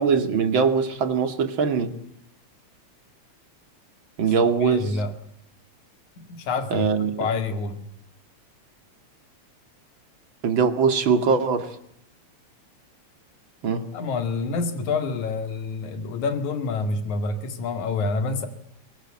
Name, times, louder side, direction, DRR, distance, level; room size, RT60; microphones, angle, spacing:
voice 1, 0.0-2.0 4.2-4.9 6.7-7.3 10.4-11.8 13.6-13.9, right 5 dB, 45° right, 2.8 m, -22 dB
voice 2, 4.5-5.1 6.2-6.9 7.2-7.8 13.9-18.5, left 3 dB, 85° left, 3.6 m, -27 dB
25.0 x 22.0 x 8.8 m
omnidirectional pair, 3.3 m